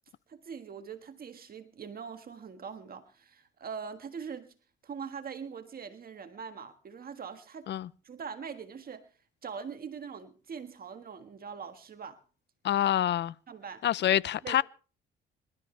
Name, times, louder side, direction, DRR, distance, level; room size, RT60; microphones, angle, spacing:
voice 1, 0.3-4.5 4.8-7.7 8.0-9.1 9.4-12.2 13.5-13.8 14.4-14.6, right 6 dB, 50° right, 1.6 m, -42 dB
voice 2, 12.6-13.3 13.8-14.6, left 11 dB, 60° left, 0.6 m, -26 dB
25.5 x 12.5 x 3.3 m
cardioid pair, 90°, 20 cm